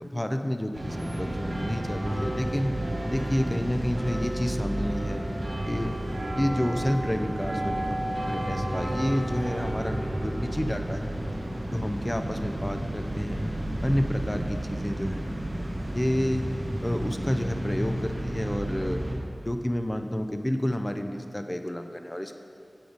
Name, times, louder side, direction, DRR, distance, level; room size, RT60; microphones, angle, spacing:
voice 1, 0.0-2.7 3.1-5.2 5.7-6.0 6.4-11.1 11.7-13.5 13.8-16.5 16.8-19.0 19.4-22.4, equal, 20° left, 6 dB, 0.4 m, -30 dB
sound 1, 0.7-19.1, right 1 dB, 80° right, 1.1 m, -31 dB
7.6 x 5.0 x 5.1 m, 2.5 s
wide cardioid pair, 60°, 0 cm